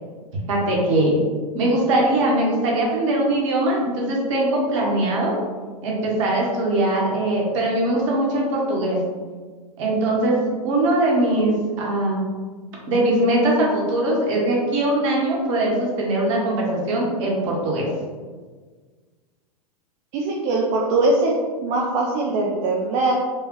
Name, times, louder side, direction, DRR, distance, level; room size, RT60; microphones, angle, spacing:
voice 1, 0.5-1.2 1.5-5.3 5.8-9.0 9.8-12.2 12.9-17.9, right 1 dB, 50° right, -2 dB, 1.2 m, -21 dB
voice 2, 20.1-21.3 21.6-23.1, right 2 dB, 35° right, -2 dB, 0.5 m, -21 dB
4.7 x 2.4 x 3.1 m, 1.5 s
figure-of-eight pair, 95°, 20 cm